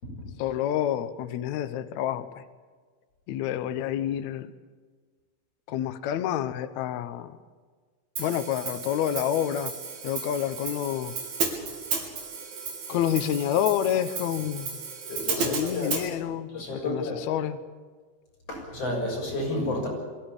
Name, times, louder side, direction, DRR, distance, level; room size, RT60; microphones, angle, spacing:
voice 1, 0.4-2.4 3.3-4.5 5.7-7.4 8.2-9.7 10.0-11.1 12.9-14.8 15.3-17.6, left 10 dB, 90° left, 11 dB, 1.6 m, -28 dB
Hi-hat, 8.2-16.1, right 5 dB, 65° right, 4.8 m, -34 dB
voice 2, 15.1-15.9 16.5-17.2 18.5-19.9, left 1 dB, 40° left, -1 dB, 7.5 m, -31 dB
22.5 x 16.5 x 8.9 m, 1.5 s
omnidirectional pair, 4.6 m